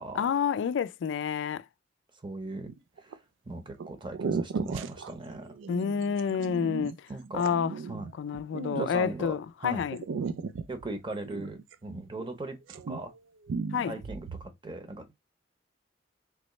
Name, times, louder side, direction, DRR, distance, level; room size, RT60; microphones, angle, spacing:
voice 1, 0.1-1.6 5.7-6.9 7.3-7.7 8.2-10.0 13.7-14.0, left 7 dB, 70° left, 0.3 m, -29 dB
voice 2, 2.2-2.7 3.0-3.2 3.5-5.5 7.1-7.4 7.9-8.1 8.7-9.3 9.6-9.8 10.7-12.6 12.9-13.1 13.8-15.1, right 2 dB, 25° right, 0.8 m, -38 dB
sound 1, 2.7-3.1 3.8-9.4 9.9-12.4 12.6-13.2 13.5-14.5, right 5 dB, 80° right, 0.4 m, -36 dB
3.5 x 3.0 x 3.1 m
head